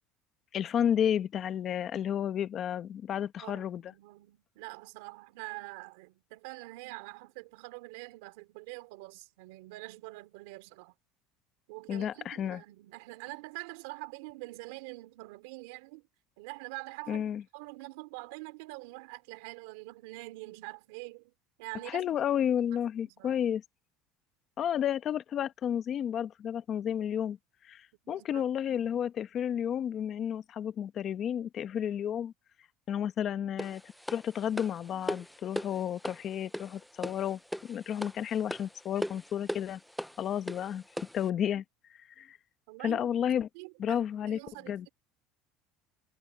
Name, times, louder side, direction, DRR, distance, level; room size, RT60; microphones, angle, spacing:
voice 1, 0.5-3.8 11.9-12.6 17.1-17.4 21.8-23.6 24.6-27.4 27.6-32.3 32.9-33.8 34.1-39.8 40.2-40.8 41.1-41.6 42.2-42.4 42.8-43.5 43.8-44.4 44.7-44.9, left 9 dB, 35° left, 1.0 m, -31 dB
voice 2, 3.4-10.9 11.7-16.0 16.4-21.3 21.6-22.1 22.5-22.6 23.2-23.5 28.0-28.4 42.7-43.0 43.5-44.0 44.3-44.9, right 24 dB, 90° right, 3.7 m, -45 dB
sound 1, 33.6-41.3, equal, ahead, 0.5 m, -39 dB
cardioid pair, 155°, 0 cm